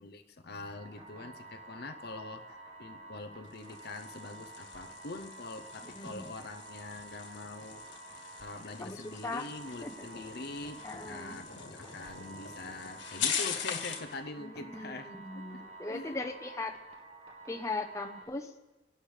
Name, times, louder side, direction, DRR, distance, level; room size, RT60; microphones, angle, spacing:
voice 1, 0.0-7.8 8.4-15.6 15.9-16.2, left 2 dB, 55° left, 7 dB, 0.7 m, -44 dB
sound 1, 0.6-18.2, right 3 dB, 30° right, 2.0 m, -50 dB
sound 2, 3.4-14.1, left 7 dB, 75° left, 1.7 m, -41 dB
voice 2, 5.9-6.3 8.8-9.5 9.8-9.9 10.8-11.4 14.4-16.8 17.5-18.5, left 2 dB, 15° left, 3 dB, 0.9 m, -39 dB
29.0 x 11.5 x 3.3 m, 1.1 s
head